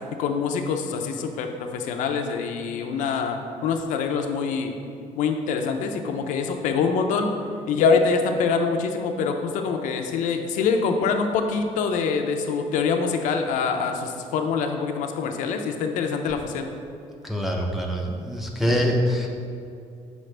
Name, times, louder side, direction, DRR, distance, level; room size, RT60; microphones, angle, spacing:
voice 1, 0.2-4.7 5.2-7.3 7.7-16.7 18.7-19.0, left 5 dB, 80° left, 5 dB, 0.5 m, -25 dB
voice 2, 17.2-19.3, equal, ahead, -2 dB, 0.5 m, -24 dB
6.3 x 4.9 x 3.3 m, 2.5 s
cardioid pair, 155°, 13 cm